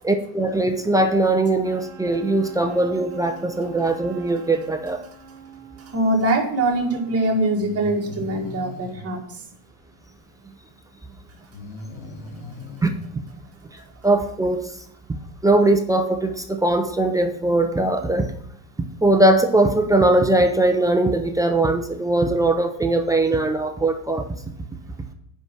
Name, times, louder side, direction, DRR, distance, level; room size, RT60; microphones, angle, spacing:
voice 1, 0.0-5.0 12.8-13.3 14.0-14.7 15.1-15.2 15.4-18.3 19.0-24.3, right 2 dB, 10° right, 5 dB, 0.3 m, -20 dB
Wind instrument woodwind instrument, 1.6-7.8, right 3 dB, 60° right, 1.4 m, -45 dB
voice 2, 5.8-9.4, right 1 dB, 30° right, 0 dB, 2.1 m, -23 dB
Breathing, 7.5-9.0 11.5-13.0, left 2 dB, 85° left, 2.1 m, -38 dB
8.0 x 5.6 x 6.0 m, 0.68 s
supercardioid pair, 135°, 49 cm